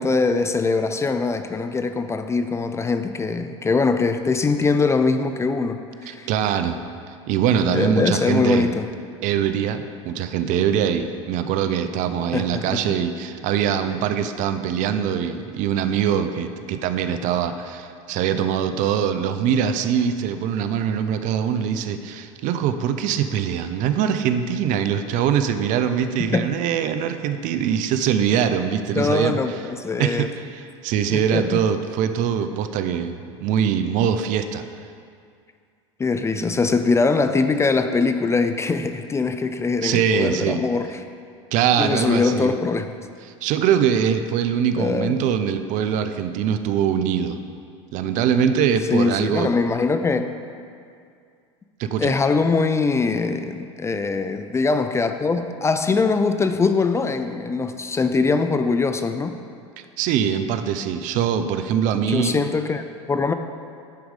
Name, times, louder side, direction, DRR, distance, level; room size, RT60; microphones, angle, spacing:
voice 1, 0.0-6.3 7.7-8.9 12.3-12.8 26.3-26.5 29.0-30.3 31.1-31.6 36.0-40.9 41.8-42.9 44.8-45.2 48.9-50.3 52.0-59.4 62.1-63.3, left 4 dB, 15° left, 8 dB, 0.4 m, -22 dB
voice 2, 6.1-6.8 7.1-8.7 9.2-29.6 30.0-34.6 39.8-40.6 41.5-42.5 43.4-47.4 47.9-49.5 51.8-52.1 60.0-62.4, right 8 dB, 55° right, 9 dB, 0.6 m, -23 dB
10.0 x 4.6 x 5.3 m, 2.3 s
hypercardioid pair, 90°, 16 cm